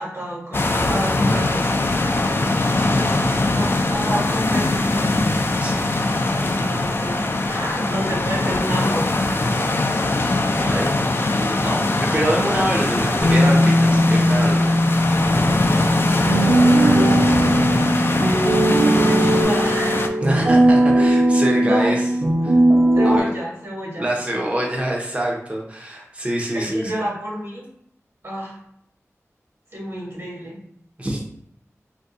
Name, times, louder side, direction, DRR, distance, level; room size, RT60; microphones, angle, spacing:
voice 1, 0.0-1.7 3.5-5.3 6.4-9.1 16.6-17.5 18.9-20.0 21.6-21.9 22.9-24.0 26.5-27.7 28.2-28.6 29.7-30.6, equal, 50° right, -4 dB, 1.3 m, -28 dB
sound 1, 0.5-20.1, left 2 dB, 45° left, 0.3 m, -21 dB
voice 2, 3.0-3.3 5.6-5.9 10.2-14.8 20.2-22.1 22.4-22.5 23.0-23.3 24.0-26.9 31.0-31.2, right 1 dB, 25° right, -2 dB, 0.6 m, -26 dB
Bass guitar, 13.2-19.4, left 1 dB, 90° left, 0.7 m, -21 dB
sound 2, 16.3-23.2, right 1 dB, 85° right, 0.7 m, -17 dB
2.6 x 2.2 x 3.7 m, 0.70 s
wide cardioid pair, 55°, 5 cm